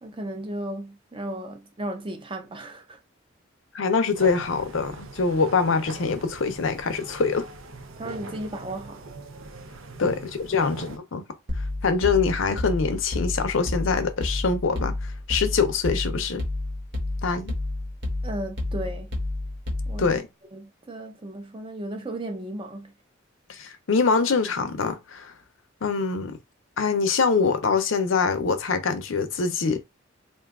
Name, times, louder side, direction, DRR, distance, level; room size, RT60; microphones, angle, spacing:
voice 1, 0.0-3.0 8.0-9.0 10.0-10.1 10.5-10.7 18.2-19.1 19.9-20.1 20.5-22.9, right 1 dB, 25° right, 0.5 m, -35 dB
voice 2, 3.7-7.5 10.0-11.2 11.8-16.4 17.2-17.5 20.0-20.3 23.5-25.3 25.8-26.4 26.8-29.8, left 4 dB, 70° left, 0.6 m, -24 dB
sound 1, 4.1-11.0, right 2 dB, 80° right, 0.5 m, -41 dB
sound 2, 11.5-20.2, left 2 dB, 60° right, 1.0 m, -30 dB
2.6 x 2.3 x 3.5 m
head